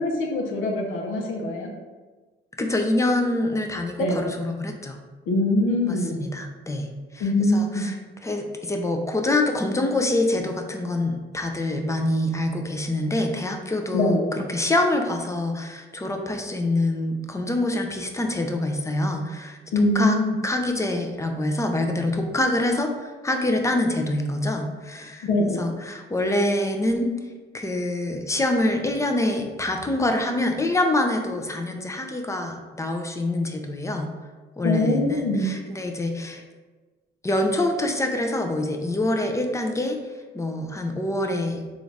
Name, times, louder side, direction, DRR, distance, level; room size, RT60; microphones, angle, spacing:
voice 1, 0.0-1.7 4.0-4.2 5.3-6.1 7.2-7.8 13.9-14.3 19.7-20.4 25.2-25.6 34.6-35.5, left 1 dB, 85° left, 2 dB, 0.7 m, -23 dB
voice 2, 2.6-5.0 5.9-6.9 7.1-19.6 19.9-20.2 20.4-25.3 25.6-27.1 27.5-34.1 34.6-36.4 37.2-40.0 40.3-41.6, left 1 dB, 15° left, 4 dB, 0.4 m, -25 dB
3.8 x 2.5 x 3.2 m, 1.3 s
cardioid pair, 90°, 20 cm